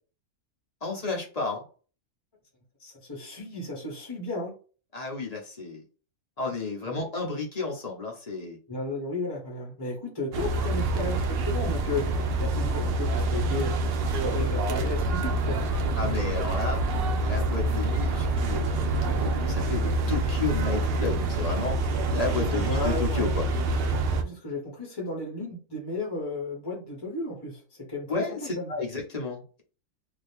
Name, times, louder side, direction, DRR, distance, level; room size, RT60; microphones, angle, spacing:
voice 1, 0.8-1.6 4.9-5.8 6.4-8.6 16.0-16.8 17.2-21.8 22.1-23.4 28.1-29.6, left 4 dB, 35° left, 0 dB, 0.7 m, -32 dB
voice 2, 2.8-4.5 6.9-7.0 8.7-13.7 14.1-16.2 22.5-23.4 24.1-28.1 28.4-28.7, left 2 dB, 20° left, -3 dB, 1.1 m, -34 dB
sound 1, 10.3-24.2, right 2 dB, 65° right, 0.6 m, -26 dB
2.8 x 2.6 x 3.4 m, 0.37 s
omnidirectional pair, 1.5 m